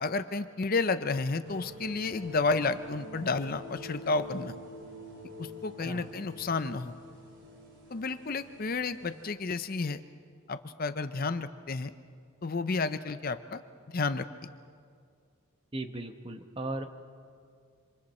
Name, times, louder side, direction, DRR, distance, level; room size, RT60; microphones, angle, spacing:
voice 1, 0.0-4.5 5.4-7.0 7.9-10.0 10.5-11.9 12.4-13.6 13.9-14.3, left 3 dB, 40° left, 11 dB, 0.6 m, -31 dB
sound 1, 1.4-9.3, left 1 dB, 55° right, 3.1 m, -47 dB
voice 2, 15.7-16.9, right 2 dB, 25° right, 7 dB, 1.0 m, -37 dB
27.0 x 26.0 x 4.3 m, 2.2 s
head